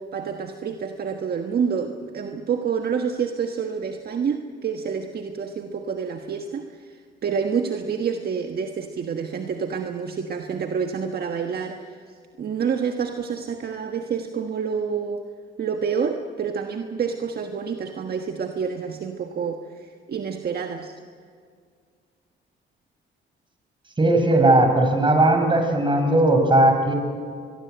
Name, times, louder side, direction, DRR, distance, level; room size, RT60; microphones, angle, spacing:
voice 1, 0.0-12.0 12.4-15.2 15.6-20.9, right 6 dB, 50° right, 5 dB, 1.4 m, -28 dB
voice 2, 24.0-26.9, right 1 dB, 25° right, 4 dB, 5.7 m, -18 dB
24.0 x 22.0 x 8.0 m, 2.1 s
cardioid pair, 90°, 20 cm